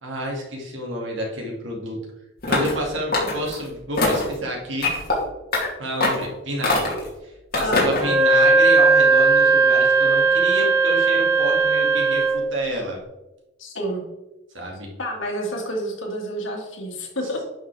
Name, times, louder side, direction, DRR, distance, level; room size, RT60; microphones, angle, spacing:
voice 1, 0.0-2.0 2.5-4.9 5.8-7.0 7.2-13.0 14.5-14.9, equal, 65° right, -1 dB, 2.3 m, -29 dB
sound 1, 2.4-2.8 3.1-3.6 4.0-4.3 4.8-5.2 5.5-5.7 6.0-6.3 6.6-7.1 7.5-8.1, left 2 dB, 45° left, 2.7 m, -22 dB
voice 2, 7.6-8.1 13.6-14.0 15.0-17.4, equal, 75° left, 0 dB, 2.2 m, -29 dB
Wind instrument woodwind instrument, 8.0-12.4, right 4 dB, 15° right, 3.2 m, -17 dB
11.0 x 5.8 x 3.4 m, 1.0 s
head